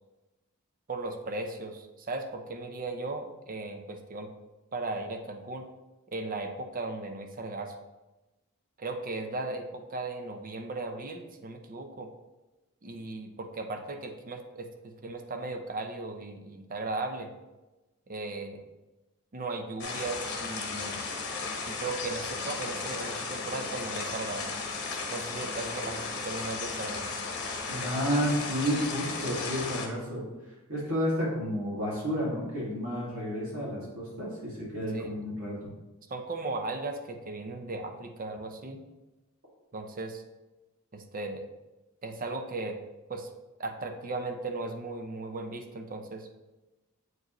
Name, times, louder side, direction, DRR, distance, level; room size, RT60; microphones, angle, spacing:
voice 1, 0.9-4.3 4.7-5.7 6.1-7.7 8.8-12.1 12.8-17.3 18.1-18.6 19.3-21.0 21.7-24.5 25.1-27.2 34.9-35.1 36.1-38.8 39.7-40.2 40.9-41.4 42.0-42.8 43.1-43.3 43.6-46.3, right 2 dB, 40° right, 5 dB, 0.6 m, -37 dB
sound 1, 19.8-29.9, left 4 dB, 50° left, 1.1 m, -35 dB
voice 2, 27.7-30.2 30.7-35.7, equal, 70° right, -5 dB, 2.2 m, -31 dB
7.8 x 4.9 x 3.0 m, 1.1 s
head